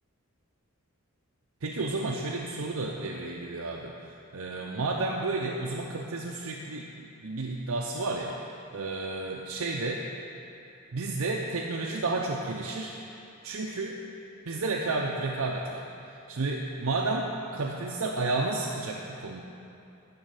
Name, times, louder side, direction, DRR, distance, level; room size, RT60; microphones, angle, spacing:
voice 1, 1.6-10.1 10.9-13.0 13.4-14.0 14.5-19.4, right 3 dB, 75° right, -1 dB, 0.7 m, -32 dB
12.5 x 4.3 x 8.1 m, 2.7 s
head